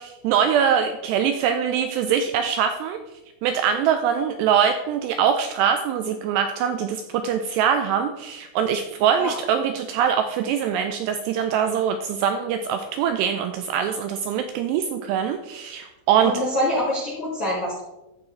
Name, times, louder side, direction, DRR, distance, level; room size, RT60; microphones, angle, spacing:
voice 1, 0.0-3.0 3.4-16.3, right 8 dB, 85° right, 7 dB, 2.4 m, -23 dB
voice 2, 16.2-17.8, left 1 dB, 50° left, -7 dB, 1.6 m, -25 dB
14.0 x 4.9 x 3.8 m, 0.98 s
omnidirectional pair, 5.3 m